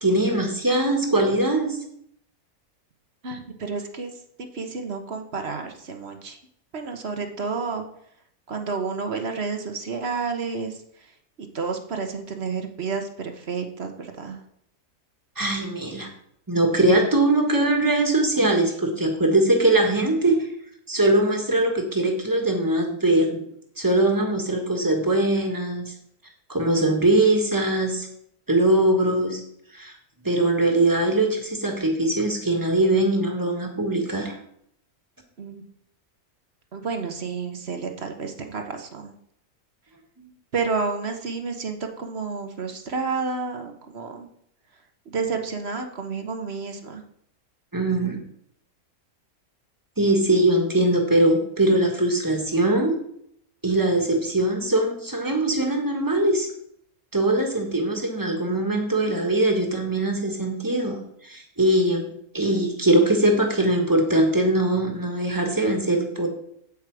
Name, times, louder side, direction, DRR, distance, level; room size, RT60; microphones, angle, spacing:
voice 1, 0.0-1.8 15.4-16.1 16.5-20.5 20.9-23.4 23.8-25.9 26.5-28.1 28.5-29.4 29.7-29.9 30.2-34.4 40.2-40.3 47.7-48.2 50.0-53.0 53.6-56.5 57.1-62.1 62.3-66.3, right 1 dB, 15° right, 3 dB, 1.6 m, -21 dB
voice 2, 3.2-6.4 6.7-7.8 8.5-11.1 11.4-14.4 35.4-35.6 36.7-39.1 40.5-44.3 45.0-47.0, right 4 dB, 45° right, 5 dB, 1.2 m, -30 dB
8.5 x 8.4 x 4.8 m, 0.70 s
omnidirectional pair, 1.6 m